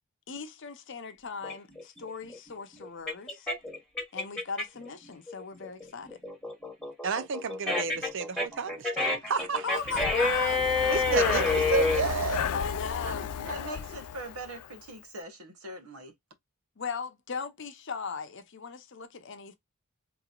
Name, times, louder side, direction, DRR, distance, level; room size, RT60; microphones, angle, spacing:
voice 1, 0.3-3.5 4.1-6.2 9.6-10.6 12.5-13.3 16.8-19.5, left 5 dB, 55° left, 0.7 m, -38 dB
sound 1, 1.4-4.9 5.3-12.0, left 3 dB, 5° left, 1.3 m, -28 dB
voice 2, 7.0-9.6 10.9-12.5, right 5 dB, 55° right, 0.5 m, -31 dB
Breathing, 9.8-14.8, left 8 dB, 90° left, 0.4 m, -33 dB
voice 3, 13.0-16.1, right 1 dB, 75° right, 1.0 m, -42 dB
3.9 x 3.0 x 2.4 m
head